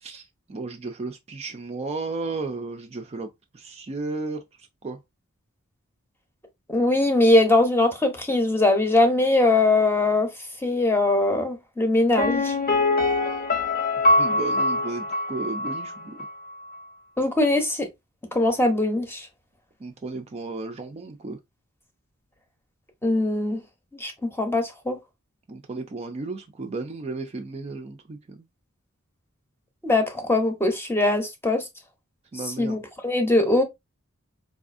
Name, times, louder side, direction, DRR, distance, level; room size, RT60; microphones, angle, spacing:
voice 1, 0.0-3.3 3.5-4.4 4.8-5.0 14.2-16.3 19.8-21.4 25.5-28.5 32.3-32.8, right 3 dB, 30° right, 0.4 m, -34 dB
voice 2, 6.7-10.3 10.6-12.5 17.2-17.9 18.3-19.3 23.0-23.6 23.9-25.0 29.8-31.7 32.6-33.6, left 2 dB, 10° left, 0.7 m, -21 dB
Piano, 12.2-15.9 16.2-16.3, left 2 dB, 45° left, 0.7 m, -23 dB
4.1 x 2.5 x 2.5 m
head